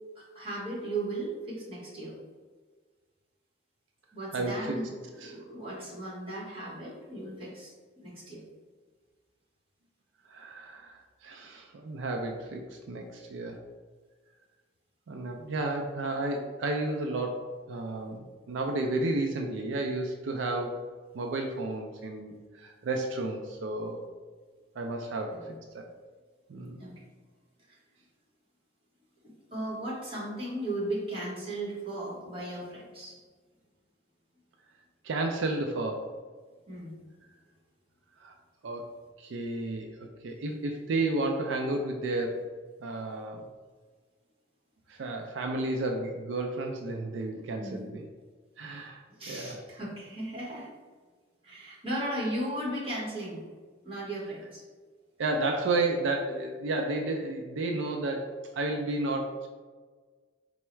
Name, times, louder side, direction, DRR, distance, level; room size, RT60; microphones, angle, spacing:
voice 1, 0.2-2.1 4.1-4.9 5.1-7.7 8.0-8.4 25.4-25.5 26.8-27.0 29.5-33.1 36.7-36.9 47.6-47.8 49.2-50.7 51.4-53.4 53.8-54.6, right 1 dB, 30° right, -5 dB, 1.3 m, -36 dB
voice 2, 4.3-4.8 5.2-5.3 10.3-13.6 15.1-20.8 21.1-24.0 24.8-25.9 26.5-26.8 35.0-36.1 38.2-38.3 38.6-42.4 42.8-43.5 44.9-48.0 48.6-49.6 55.2-59.5, right 2 dB, 85° right, 3 dB, 0.4 m, -32 dB
4.5 x 2.1 x 4.3 m, 1.5 s
head